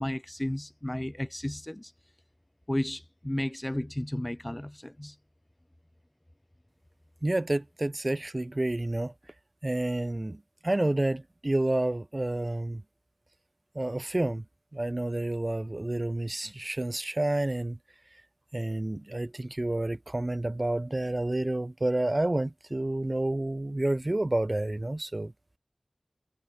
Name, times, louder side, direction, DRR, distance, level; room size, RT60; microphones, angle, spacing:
voice 1, 0.0-1.9 2.7-5.2, left 1 dB, 20° left, 0.4 m, -33 dB
voice 2, 7.2-9.1 9.6-12.8 13.7-14.4 14.7-17.8 18.5-25.3, right 1 dB, 40° right, 2.3 m, -29 dB
wide cardioid pair, 55°, 0 cm